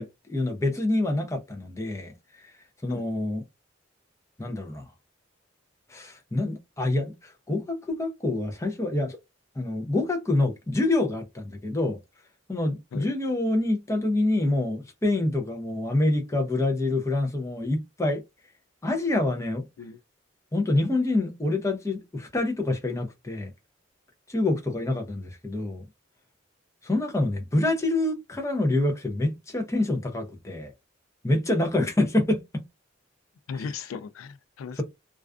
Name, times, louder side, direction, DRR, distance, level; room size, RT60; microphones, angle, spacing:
voice 1, 0.0-2.1 2.4-2.5 2.8-3.4 4.4-4.8 5.9-9.2 9.6-12.0 12.5-18.2 18.8-19.6 20.5-23.5 24.3-25.8 26.8-30.7 31.2-32.6 33.5-33.7 34.8-34.9, left 2 dB, 15° left, 0.5 m, -26 dB
voice 2, 33.5-34.8, left 5 dB, 90° left, 0.3 m, -37 dB
2.3 x 2.3 x 2.3 m
head